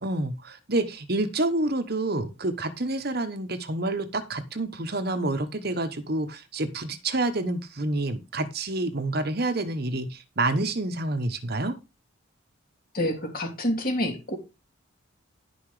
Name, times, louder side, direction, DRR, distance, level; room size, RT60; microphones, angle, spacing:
voice 1, 0.0-11.8, right 2 dB, 50° right, 1.2 m, -28 dB
voice 2, 12.9-14.4, left 1 dB, 45° left, 3.3 m, -27 dB
11.5 x 6.0 x 5.0 m
head